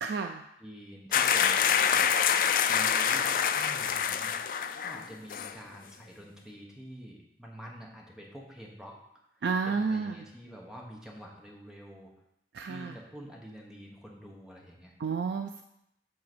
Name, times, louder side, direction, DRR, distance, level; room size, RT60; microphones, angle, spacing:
voice 1, 0.0-0.4 9.4-10.1 12.5-12.9 15.0-15.6, right 5 dB, 70° right, 6 dB, 0.4 m, -31 dB
voice 2, 0.6-2.1 2.6-4.3 4.8-9.0 9.3-12.1 12.6-14.9, equal, 5° right, -1 dB, 1.1 m, -47 dB
sound 1, 1.1-5.0 5.3-5.5, left 8 dB, 50° left, 0.3 m, -26 dB
7.6 x 4.0 x 6.1 m, 0.81 s
head